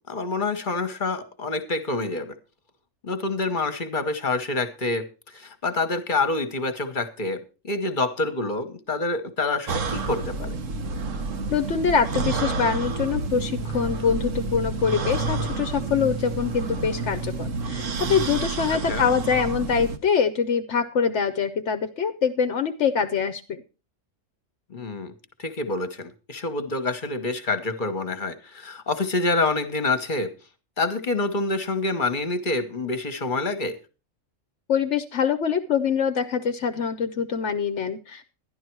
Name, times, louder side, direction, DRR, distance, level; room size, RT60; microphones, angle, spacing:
voice 1, 0.1-2.3 3.0-10.6 18.9-19.0 24.7-25.1 25.4-30.3 30.8-33.7, left 3 dB, 40° left, 10 dB, 1.3 m, -27 dB
sound 1, 9.7-20.0, right 4 dB, 75° right, 1.3 m, -29 dB
voice 2, 11.5-23.6 34.7-38.3, left 6 dB, 65° left, 9 dB, 1.0 m, -24 dB
11.5 x 11.0 x 4.6 m, 0.32 s
omnidirectional pair, 1.4 m